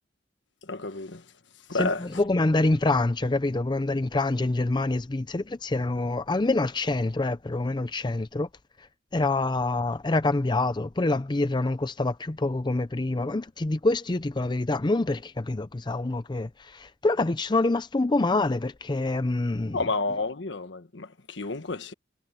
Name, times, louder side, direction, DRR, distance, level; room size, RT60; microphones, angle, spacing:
voice 1, 0.6-1.3 1.7-2.1 19.7-21.9, left 3 dB, 75° left, 1.4 m, -30 dB
voice 2, 1.8-8.5 9.1-19.8, left 2 dB, 25° left, 0.5 m, -26 dB
head